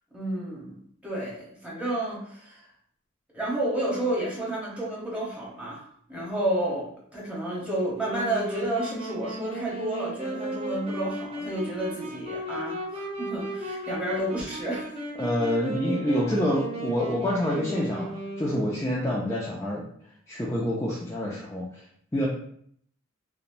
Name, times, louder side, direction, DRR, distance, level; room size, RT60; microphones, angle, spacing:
voice 1, 0.1-2.7 3.3-5.8 6.1-15.0, right 1 dB, 5° right, -6 dB, 0.9 m, -31 dB
Wind instrument woodwind instrument, 8.0-18.9, right 1 dB, 30° right, 0.6 m, -35 dB
voice 2, 15.2-19.8 20.3-21.6 22.1-22.3, left 1 dB, 15° left, -6 dB, 0.3 m, -27 dB
2.9 x 2.0 x 2.5 m, 0.64 s
head